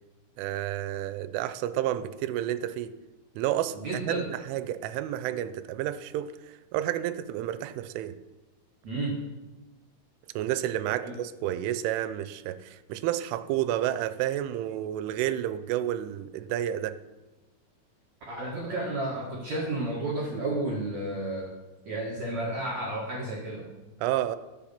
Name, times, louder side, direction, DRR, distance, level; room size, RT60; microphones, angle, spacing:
voice 1, 0.4-2.9 3.4-3.8 4.0-6.3 6.7-8.2 10.3-17.0 24.0-24.4, right 12 dB, 85° right, 13 dB, 3.1 m, -30 dB
voice 2, 3.7-4.3 8.8-9.2 11.0-11.2 18.3-21.5 21.9-23.7, right 2 dB, 50° right, -3 dB, 2.3 m, -32 dB
21.0 x 7.6 x 5.9 m, 1.1 s
omnidirectional pair, 5.6 m